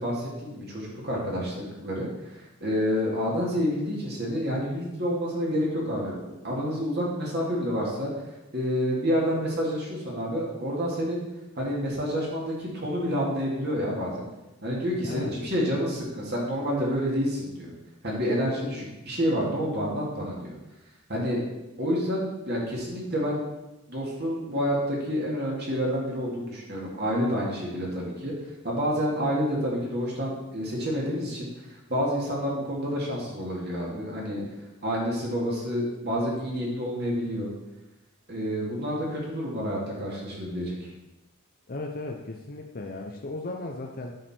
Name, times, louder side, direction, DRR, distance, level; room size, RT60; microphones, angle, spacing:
voice 1, 0.0-6.2 6.4-8.1 8.5-11.2 11.6-14.3 14.6-17.7 18.0-20.5 21.1-21.4 21.8-23.4 23.9-28.3 28.6-31.5 31.9-34.4 34.8-37.5 38.3-40.9, equal, 45° right, -3 dB, 2.5 m, -28 dB
voice 2, 15.0-15.4 41.7-44.2, left 2 dB, 40° left, 1 dB, 0.7 m, -36 dB
9.0 x 6.5 x 4.4 m, 1.0 s
head